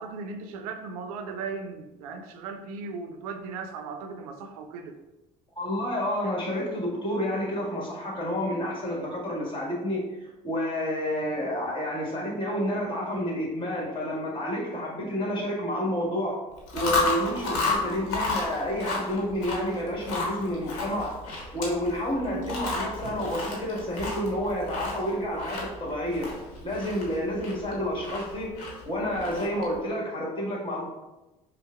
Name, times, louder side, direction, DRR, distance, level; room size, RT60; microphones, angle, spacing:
voice 1, 0.0-5.0, right 4 dB, 85° right, 6 dB, 0.4 m, -37 dB
voice 2, 5.5-16.4 16.7-21.1 21.5-26.3 26.6-28.5 28.8-30.9, equal, 25° left, -3 dB, 1.4 m, -29 dB
Chewing mastication, 16.6-29.8, left 3 dB, 80° left, 0.9 m, -32 dB
5.3 x 2.0 x 2.3 m, 1.0 s
hypercardioid pair, 65°, 18 cm